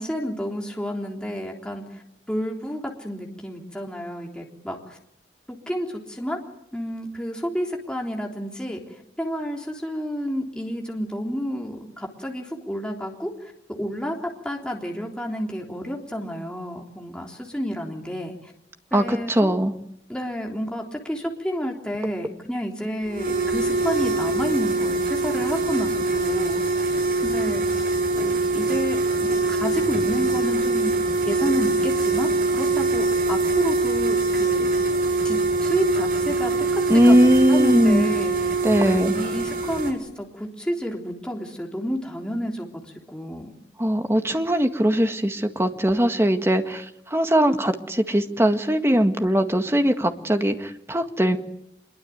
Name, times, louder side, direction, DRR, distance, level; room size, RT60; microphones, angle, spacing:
voice 1, 0.0-1.8 2.3-5.0 5.7-6.4 6.7-8.8 9.2-13.3 13.8-14.2 14.4-18.3 18.9-19.5 20.1-26.8 27.2-27.8 28.1-31.0 31.3-34.7 35.2-38.3 38.7-42.7 43.1-43.5, equal, 5° left, 0 dB, 3.5 m, -30 dB
voice 2, 18.9-19.7 36.9-38.1 38.6-39.1 43.8-51.4, equal, 15° right, 6 dB, 1.8 m, -20 dB
sound 1, 23.1-39.9, right 3 dB, 55° right, 6.3 m, -23 dB
26.0 x 22.5 x 9.4 m, 0.76 s
head